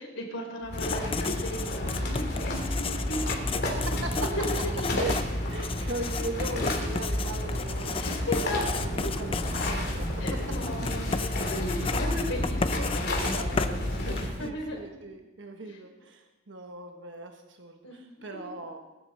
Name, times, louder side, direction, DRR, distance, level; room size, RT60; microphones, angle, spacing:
voice 1, 0.0-4.4 4.9-5.2 7.9-8.7 9.0-9.3 10.2-14.9 15.7-15.9 17.8-18.0, left 1 dB, 75° left, 2 dB, 3.8 m, -36 dB
Writing, 0.6-14.5, left 3 dB, 30° left, 0.6 m, -33 dB
sound 1, 0.7-14.3, left 1 dB, 55° left, 3.0 m, -32 dB
voice 2, 3.7-4.3 4.9-5.2 5.5-8.5 8.8-10.8 14.0-18.8, right 2 dB, 60° right, 4 dB, 1.1 m, -39 dB
sound 2, 8.8-14.5, right 2 dB, 45° right, 0.8 m, -45 dB
21.0 x 12.0 x 4.3 m, 1.1 s
head